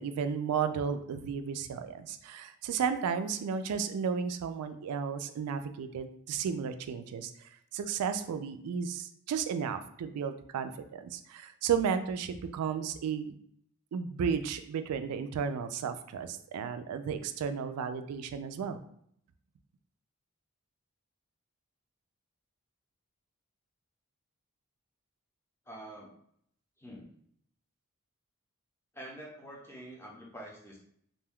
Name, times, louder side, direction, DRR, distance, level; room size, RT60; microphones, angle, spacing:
voice 1, 0.0-7.3 7.7-13.3 13.9-18.8, right 7 dB, 90° right, 13 dB, 0.3 m, -33 dB
voice 2, 25.7-26.2 26.8-27.1 28.9-30.8, right 1 dB, 10° left, -2 dB, 0.5 m, -46 dB
2.5 x 2.2 x 3.5 m, 0.67 s
head